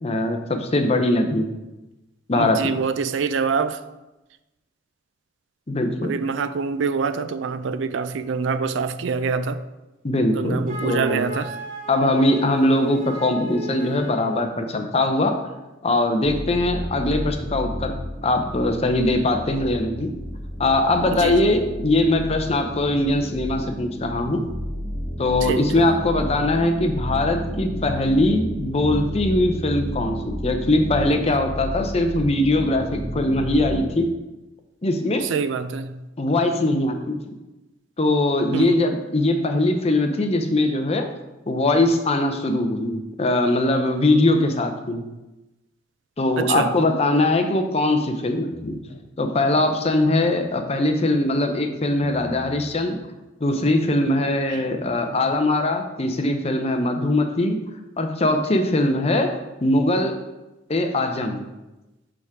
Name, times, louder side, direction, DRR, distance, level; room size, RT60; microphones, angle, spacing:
voice 1, 0.0-1.5 2.3-2.8 5.7-6.1 10.0-11.2 11.9-15.4 15.8-17.9 18.2-20.1 20.6-24.4 25.2-34.1 34.8-35.3 36.2-37.2 38.0-41.1 41.5-45.0 46.2-48.8 49.2-53.0 53.4-57.6 58.0-60.2 60.7-61.4, left 2 dB, 35° left, 0.6 m, -21 dB
voice 2, 2.4-3.8 6.0-9.6 10.3-11.5 21.1-21.4 25.4-25.8 35.3-36.0 38.5-38.8 46.4-46.7, right 5 dB, 70° right, 0.4 m, -25 dB
Wind instrument woodwind instrument, 10.7-14.4, equal, 45° right, 1.5 m, -35 dB
sound 1, 16.2-33.9, equal, 25° right, 1.7 m, -31 dB
sound 2, 48.5-49.0 49.5-53.0 53.5-55.3, left 1 dB, 85° left, 0.9 m, -40 dB
6.9 x 3.6 x 4.8 m
head